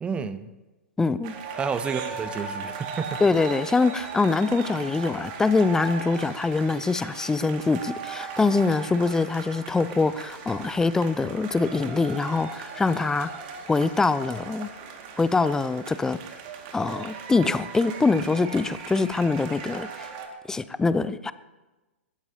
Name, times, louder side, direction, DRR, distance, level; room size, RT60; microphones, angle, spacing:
voice 1, 0.0-0.5 1.5-3.2, right 6 dB, 15° right, 12 dB, 0.9 m, -30 dB
voice 2, 1.0-1.3 3.2-13.3 13.7-14.7 15.2-16.2 16.7-20.1 20.5-21.3, left 3 dB, 10° left, 15 dB, 0.5 m, -24 dB
sound 1, 1.2-20.3, right 5 dB, 40° right, 2.2 m, -38 dB
21.0 x 15.5 x 2.9 m, 1.1 s
figure-of-eight pair, 110°, 7 cm